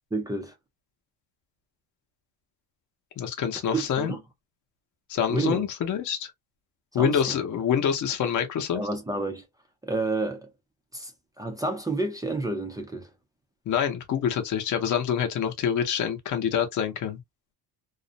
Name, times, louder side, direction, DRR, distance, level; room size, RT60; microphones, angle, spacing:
voice 1, 0.1-0.5 3.7-4.2 5.3-5.6 7.0-7.4 8.7-9.5 9.8-10.5 10.9-11.1 11.4-13.1, right 3 dB, 10° right, 0.3 m, -30 dB
voice 2, 3.2-4.1 5.1-6.3 6.9-8.8 13.7-17.2, left 8 dB, 45° left, 0.7 m, -26 dB
2.4 x 2.0 x 2.6 m
cardioid pair, 150°, 44 cm